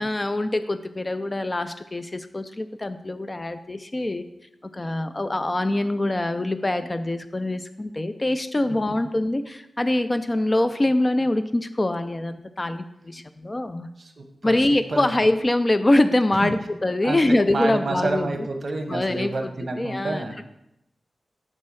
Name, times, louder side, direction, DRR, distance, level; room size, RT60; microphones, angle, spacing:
voice 1, 0.0-4.2 4.7-13.9 14.4-18.5 18.9-19.5 19.8-20.2, left 1 dB, 20° left, 10 dB, 0.3 m, -24 dB
voice 2, 14.0-15.2 16.3-16.5 17.0-20.4, right 2 dB, 50° right, 4 dB, 0.9 m, -29 dB
6.5 x 4.2 x 6.1 m, 0.86 s
wide cardioid pair, 120°, 0 cm